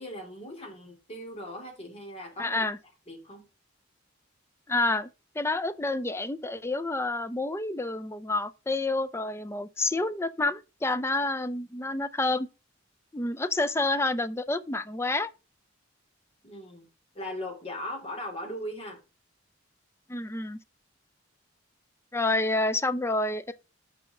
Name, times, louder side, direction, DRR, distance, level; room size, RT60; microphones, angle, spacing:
voice 1, 0.0-2.6 3.1-3.5 16.4-16.9 17.1-19.0, left 1 dB, 30° left, 2.8 m, -39 dB
voice 2, 2.4-2.8 4.7-5.1 5.3-12.5 13.1-15.3 20.1-20.6 22.1-23.5, left 2 dB, 15° left, 0.5 m, -28 dB
6.3 x 5.6 x 4.9 m
head